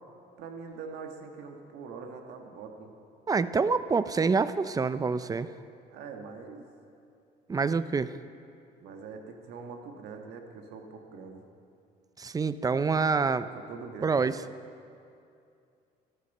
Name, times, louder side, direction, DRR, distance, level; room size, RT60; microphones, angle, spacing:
voice 1, 0.4-2.9 5.9-6.6 8.8-11.4 13.5-14.3, right 5 dB, 85° right, 3 dB, 1.6 m, -43 dB
voice 2, 3.3-5.5 7.5-8.1 12.2-13.5 14.0-14.4, right 4 dB, 20° right, 14 dB, 0.4 m, -26 dB
14.5 x 11.5 x 5.5 m, 2.5 s
cardioid pair, 110°, 17 cm